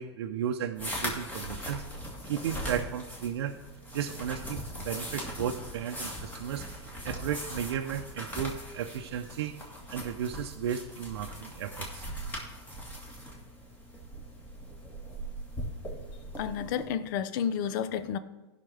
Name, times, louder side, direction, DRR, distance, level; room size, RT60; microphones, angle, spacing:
voice 1, 0.0-1.8 2.2-3.5 3.9-6.7 7.0-9.6 9.9-12.0, right 9 dB, 70° right, 4 dB, 0.7 m, -34 dB
sound 1, 0.8-16.8, equal, 15° left, 1.7 m, -40 dB
voice 2, 16.4-18.2, left 8 dB, 50° left, 13 dB, 0.7 m, -31 dB
16.0 x 5.8 x 3.4 m, 1.1 s
hypercardioid pair, 140°, 14 cm